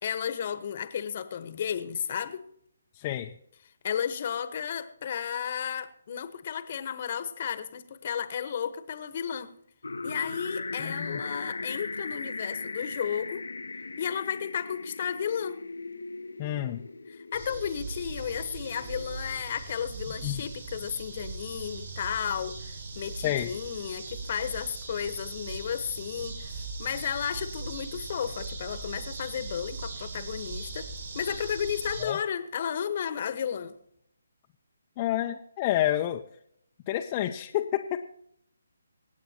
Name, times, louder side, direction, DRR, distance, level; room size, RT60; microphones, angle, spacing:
voice 1, 0.0-2.5 3.8-9.5 10.0-13.5 14.0-15.6 17.1-33.8, left 8 dB, 45° left, 12 dB, 1.2 m, -33 dB
voice 2, 3.0-3.3 10.8-11.2 16.4-16.8 20.2-20.4 23.2-23.5 32.0-32.2 35.0-36.2 36.9-38.0, left 13 dB, 30° left, 3 dB, 0.7 m, -29 dB
sound 1, 9.8-19.7, left 3 dB, 75° left, 0.9 m, -39 dB
sound 2, 17.3-32.0, right 4 dB, 55° right, 5.2 m, -40 dB
25.5 x 8.6 x 2.9 m, 0.72 s
figure-of-eight pair, 150°, 0 cm